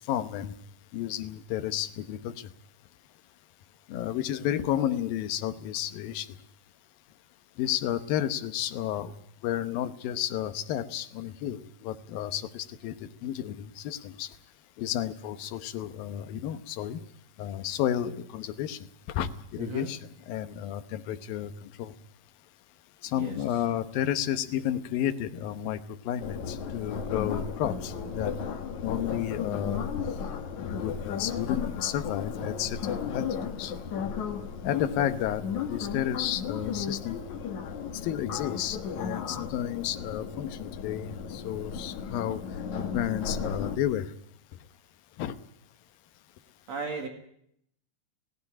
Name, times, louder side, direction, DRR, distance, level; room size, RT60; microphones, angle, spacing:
voice 1, 0.1-0.5 0.9-2.3 3.9-6.3 7.6-9.1 9.4-12.9 13.2-14.3 14.8-17.0 17.4-18.8 19.2-20.0 20.3-21.5 21.8-21.9 23.1-25.8 26.1-28.3 28.8-29.9 30.6-33.3 33.6-33.7 34.6-37.2 38.0-42.4 42.8-44.1 45.2-45.3, left 11 dB, 85° left, 11 dB, 2.8 m, -31 dB
voice 2, 19.6-19.9 23.1-23.4 46.7-47.1, right 4 dB, 55° right, 4 dB, 2.8 m, -35 dB
sound 1, 26.2-43.8, left 6 dB, 60° left, 3.0 m, -35 dB
17.5 x 17.0 x 9.8 m, 0.70 s
omnidirectional pair, 4.0 m